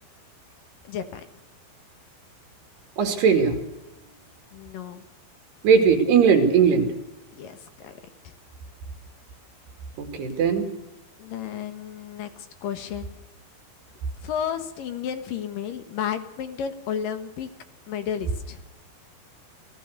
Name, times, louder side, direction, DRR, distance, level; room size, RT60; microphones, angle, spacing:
voice 1, 0.8-1.2 4.5-5.0 7.3-8.0 8.2-8.3 11.2-13.1 14.2-17.5 17.9-18.6, left 8 dB, 65° left, 9 dB, 2.9 m, -32 dB
voice 2, 3.0-3.6 5.6-6.9 10.0-10.7, right 6 dB, 90° right, 6 dB, 4.8 m, -19 dB
28.5 x 16.5 x 6.7 m, 0.94 s
omnidirectional pair, 4.6 m